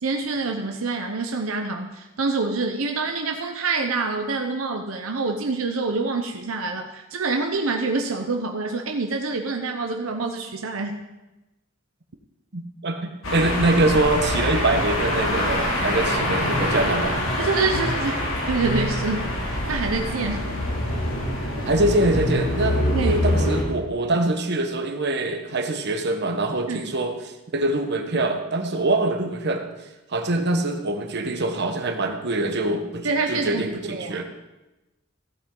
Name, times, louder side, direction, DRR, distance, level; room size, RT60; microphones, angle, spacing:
voice 1, 0.0-11.0 17.4-18.2 18.5-20.4 22.9-23.2 26.7-26.8 33.0-34.2, right 3 dB, 80° right, 3 dB, 0.8 m, -26 dB
voice 2, 12.5-17.2 21.6-27.1 27.5-29.6 30.1-34.2, right 2 dB, 55° right, 5 dB, 1.2 m, -24 dB
sound 1, 13.2-23.6, left 1 dB, 85° left, 2.9 m, -25 dB
15.0 x 8.9 x 3.9 m, 1.0 s
head